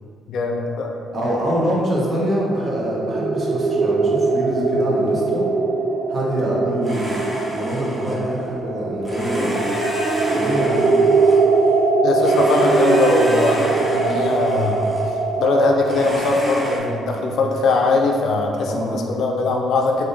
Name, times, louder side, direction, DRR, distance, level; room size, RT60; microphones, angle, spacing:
voice 1, 0.3-0.9 6.7-6.9 10.6-11.2 12.0-14.9 15.4-20.1, left 3 dB, 70° left, 1 dB, 0.4 m, -21 dB
voice 2, 1.1-5.4 6.1-9.7 10.3-11.1 18.7-19.0, equal, 40° right, -4 dB, 0.9 m, -25 dB
sound 1, 1.6-18.4, right 3 dB, 60° right, 0.3 m, -21 dB
Domestic sounds home sounds, 6.8-8.5 9.0-11.8 12.2-15.2 15.8-16.8, equal, 10° right, 0.9 m, -30 dB
3.4 x 2.6 x 3.8 m, 2.2 s
cardioid pair, 90°, 0 cm